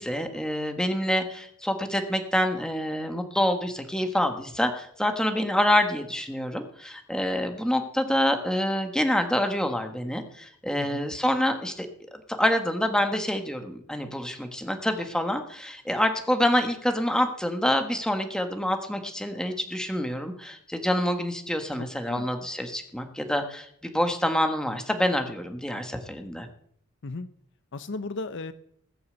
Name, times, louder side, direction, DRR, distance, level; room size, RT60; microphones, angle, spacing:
voice 1, 0.0-26.5, left 1 dB, 5° left, 5 dB, 1.5 m, -27 dB
voice 2, 10.8-11.1 21.8-22.3 27.0-27.3 27.7-28.5, left 3 dB, 60° left, 12 dB, 0.7 m, -36 dB
19.5 x 7.0 x 7.9 m, 0.66 s
head